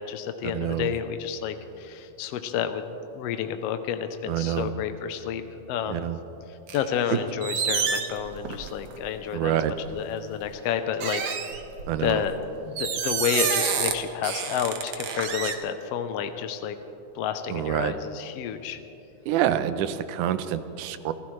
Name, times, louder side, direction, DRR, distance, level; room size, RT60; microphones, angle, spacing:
voice 1, 0.0-2.8 3.1-5.4 5.7-6.1 6.5-9.6 9.9-11.2 12.0-16.8 17.1-18.8, left 8 dB, 80° left, 8 dB, 1.4 m, -30 dB
voice 2, 0.5-0.9 4.3-4.7 5.9-6.2 7.1-7.2 9.3-9.7 11.9-12.2 17.5-17.9 19.3-21.1, right 11 dB, 80° right, 11 dB, 2.1 m, -26 dB
sound 1, 6.7-7.1 7.4-8.9 9.8-10.0 11.0-12.1 12.8-13.9 14.2-15.5, right 7 dB, 60° right, 1.8 m, -28 dB
27.0 x 15.5 x 3.2 m, 3.0 s
omnidirectional pair, 3.6 m